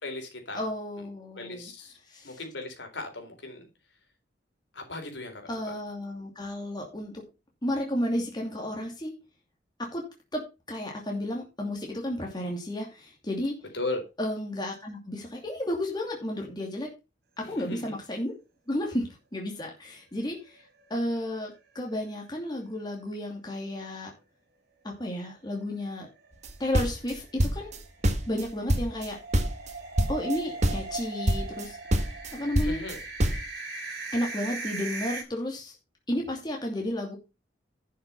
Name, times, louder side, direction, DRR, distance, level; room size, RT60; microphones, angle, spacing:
voice 1, 0.0-0.7 1.4-1.9 2.2-3.7 4.7-5.7 13.7-14.0 17.4-17.9 32.6-33.0, left 2 dB, 80° left, 4 dB, 3.9 m, -37 dB
voice 2, 0.5-1.7 2.1-2.4 5.5-7.2 7.6-9.1 9.8-10.0 10.3-13.5 14.2-16.9 17.4-18.3 18.7-20.6 20.9-24.1 24.8-26.1 26.6-27.8 28.3-29.2 30.1-31.8 32.3-32.8 34.1-35.8 36.1-37.2, left 1 dB, 25° left, 0 dB, 2.6 m, -32 dB
sound 1, 20.3-21.2 21.5-21.6 22.0-22.1 26.2-35.2, right 3 dB, 60° right, 4.3 m, -39 dB
sound 2, 26.4-27.8 28.0-29.1 29.3-29.7 30.0-30.4 30.6-31.0 31.3-31.7 31.9-33.5, equal, 40° right, 1.6 m, -25 dB
11.0 x 6.6 x 5.5 m, 0.28 s
head